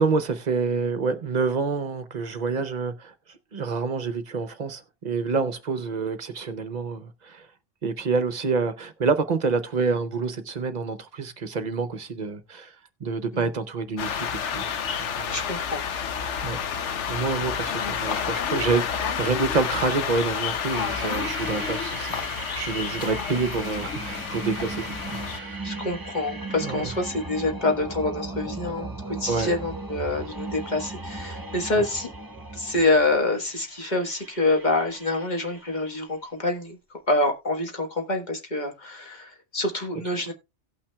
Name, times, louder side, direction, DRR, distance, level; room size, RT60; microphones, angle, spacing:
voice 1, 0.0-3.1 3.5-7.5 7.8-12.7 13.0-14.7 15.0-15.4 16.4-16.6 17.1-22.2 22.5-25.7 26.6-26.8 29.3-29.5, right 4 dB, 45° right, 0.7 m, -27 dB
sound 1, 14.0-25.4, left 7 dB, 75° left, 1.0 m, -30 dB
voice 2, 15.3-15.8 25.6-32.1 32.5-40.3, left 2 dB, 40° left, 1.6 m, -26 dB
sound 2, 20.7-36.0, right 2 dB, 20° right, 1.0 m, -37 dB
17.5 x 5.8 x 2.3 m
omnidirectional pair, 1.2 m